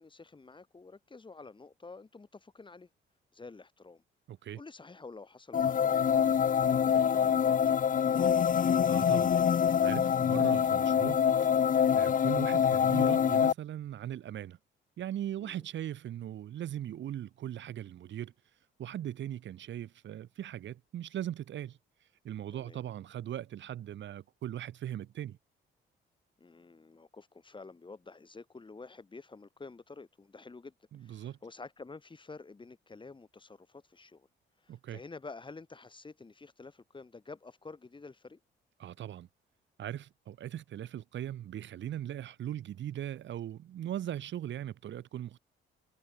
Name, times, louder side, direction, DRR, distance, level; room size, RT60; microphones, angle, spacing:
voice 1, 0.0-2.9 3.3-4.0 4.5-8.5 15.4-15.6 22.5-22.8 26.4-30.7 31.0-34.3 34.6-38.4, left 3 dB, 25° left, 3.0 m, -50 dB
voice 2, 4.3-4.6 8.9-9.4 9.8-11.5 12.0-14.6 15.0-18.3 18.8-21.8 22.2-25.4 30.9-31.4 34.7-35.0 38.8-39.3 39.8-45.4, right 11 dB, 70° right, 2.0 m, -39 dB
sound 1, 5.5-13.5, left 8 dB, 45° left, 0.9 m, -25 dB
cardioid pair, 90°, 20 cm